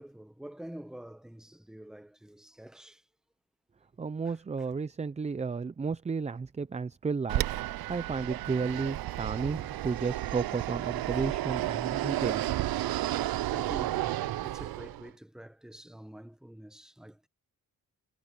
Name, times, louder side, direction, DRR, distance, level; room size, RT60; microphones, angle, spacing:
voice 1, 0.0-3.1 4.2-4.4 13.5-17.3, right 1 dB, ahead, 1.1 m, -47 dB
voice 2, 4.0-7.4 7.9-12.4, right 5 dB, 20° right, 0.4 m, -33 dB
Fixed-wing aircraft airplane, 7.3-15.1, right 15 dB, 85° right, 0.6 m, -32 dB
wide cardioid pair, 135°, 35 cm